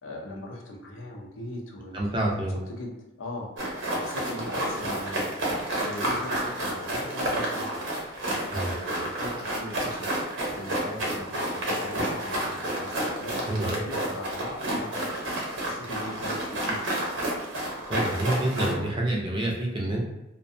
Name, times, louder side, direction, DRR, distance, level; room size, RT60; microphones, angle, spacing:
voice 1, 0.0-5.3 5.7-7.7 8.5-15.3 15.6-17.3, left 1 dB, 85° left, -1 dB, 0.6 m, -40 dB
voice 2, 1.9-2.6 8.5-8.8 13.5-13.9 17.9-20.0, right 1 dB, 25° right, -2 dB, 0.4 m, -28 dB
sound 1, 3.6-18.7, right 1 dB, 85° right, 0.8 m, -30 dB
2.5 x 2.2 x 2.6 m, 0.94 s
head